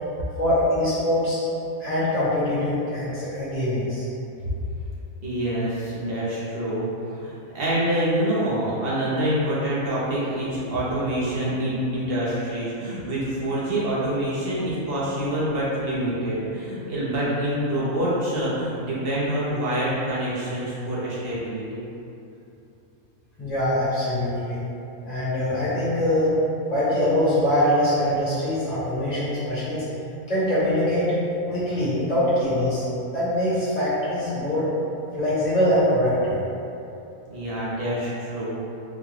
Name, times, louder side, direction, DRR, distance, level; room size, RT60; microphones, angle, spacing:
voice 1, 0.4-1.4 1.8-4.0 23.4-24.6 25.0-26.3 26.7-29.8 30.3-31.1 31.5-32.8 33.1-34.7 35.1-36.4, left 1 dB, 30° left, -11 dB, 1.1 m, -23 dB
voice 2, 5.2-21.8 37.3-38.5, right 1 dB, 50° right, -8 dB, 0.9 m, -26 dB
3.7 x 2.2 x 3.1 m, 2.8 s
omnidirectional pair, 1.5 m